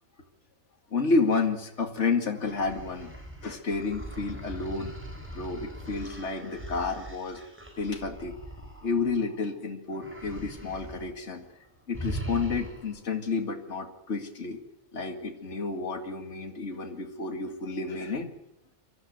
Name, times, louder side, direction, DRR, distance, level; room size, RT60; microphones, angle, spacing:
voice 1, 0.9-3.1 3.4-4.9 5.3-7.4 7.8-8.4 8.8-11.4 11.9-14.6 14.9-18.3, left 4 dB, 55° left, 5 dB, 2.5 m, -30 dB
sound 1, 2.3-9.5 9.9-11.1 11.4-11.6 11.9-13.1, right 1 dB, 10° right, 4.4 m, -41 dB
24.0 x 14.0 x 9.4 m, 0.89 s
omnidirectional pair, 1.5 m